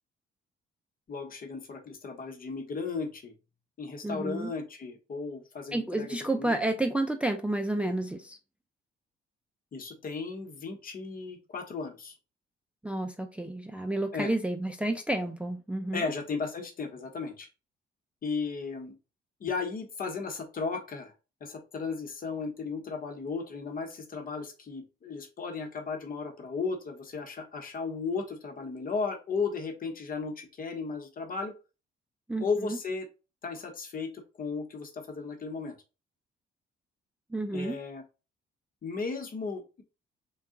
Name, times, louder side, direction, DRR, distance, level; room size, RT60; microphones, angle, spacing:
voice 1, 1.1-3.3 3.8-6.6 9.7-12.1 14.1-14.3 15.9-17.5 18.2-18.9 19.4-21.1 21.4-31.5 32.4-33.1 33.4-35.7 37.5-38.0 38.8-39.8, left 4 dB, 45° left, 1.0 m, -35 dB
voice 2, 4.0-4.5 5.7-8.4 12.8-16.0 32.3-32.8 37.3-37.8, right 1 dB, 5° right, 0.4 m, -30 dB
3.6 x 2.3 x 3.7 m
cardioid pair, 90°, 20 cm